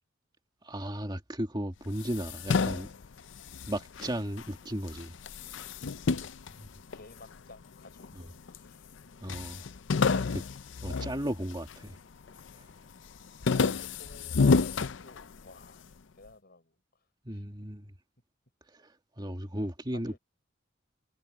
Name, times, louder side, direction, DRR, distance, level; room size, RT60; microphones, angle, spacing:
voice 1, 0.6-2.9 3.6-5.2 9.2-9.7 10.8-12.0 12.5-12.7 17.2-17.9 18.7-20.2, right 1 dB, 25° right, 2.4 m, -35 dB
sound 1, 1.9-4.5 4.9-7.4 8.0-8.7 8.9-9.0 9.3-11.9 12.3-12.7 13.1-15.6, left 4 dB, 70° left, 0.6 m, -30 dB
voice 2, 6.2-6.6 6.9-8.9 10.7-10.8 14.0-15.9 16.1-17.0 17.3-17.4 19.9-20.2, left 2 dB, 55° left, 6.4 m, -55 dB
head